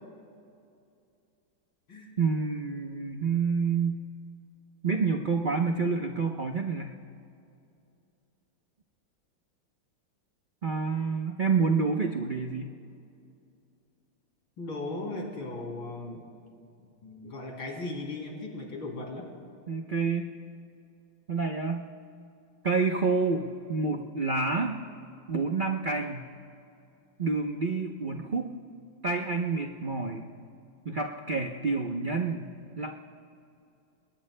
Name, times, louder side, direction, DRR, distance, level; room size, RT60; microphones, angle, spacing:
voice 1, 2.2-4.0 4.8-7.0 10.6-12.7 19.7-20.3 21.3-21.8 22.6-24.8 25.3-26.3 27.2-28.6 29.0-30.3 30.8-33.0, right 4 dB, 65° right, 2 dB, 0.4 m, -28 dB
voice 2, 14.6-16.3 16.8-19.3, left 2 dB, 85° left, -1 dB, 3.9 m, -37 dB
29.0 x 21.0 x 2.2 m, 2.6 s
omnidirectional pair, 2.1 m